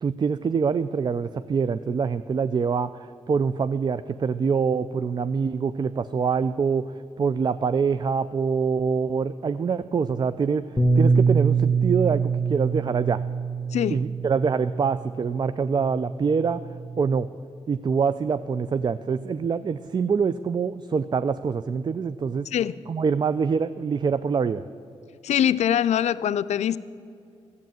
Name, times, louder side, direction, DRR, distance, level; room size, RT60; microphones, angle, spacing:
voice 1, 0.0-6.8 7.2-10.7 10.9-13.2 13.9-16.6 17.0-17.3 17.7-22.5 22.9-24.6, right 5 dB, 40° right, 14 dB, 0.4 m, -25 dB
Bass guitar, 10.8-15.3 16.0-17.0, right 5 dB, 20° left, 1.0 m, -24 dB
voice 2, 25.2-26.8, left 10 dB, 75° left, 14 dB, 0.4 m, -23 dB
12.0 x 8.3 x 9.1 m, 2.5 s
cardioid pair, 65°, 12 cm